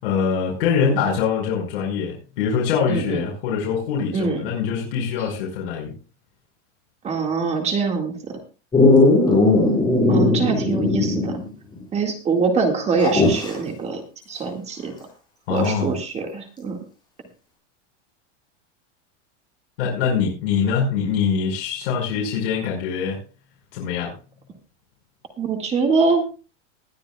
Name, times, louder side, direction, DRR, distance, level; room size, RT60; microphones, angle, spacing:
voice 1, 0.0-5.9 15.5-15.9 19.8-23.2 23.7-24.1, left 6 dB, 60° left, -2 dB, 5.4 m, -23 dB
voice 2, 2.9-3.2 4.1-4.5 7.0-8.4 10.1-11.4 11.9-14.9 15.5-16.8 25.4-26.3, right 4 dB, 15° right, 3 dB, 2.0 m, -23 dB
Dog, 8.7-11.5 11.8-11.9 13.0-13.6 15.6-15.7, left 2 dB, 10° left, 6.4 m, -17 dB
20.5 x 11.0 x 2.3 m, 0.33 s
supercardioid pair, 170°, 36 cm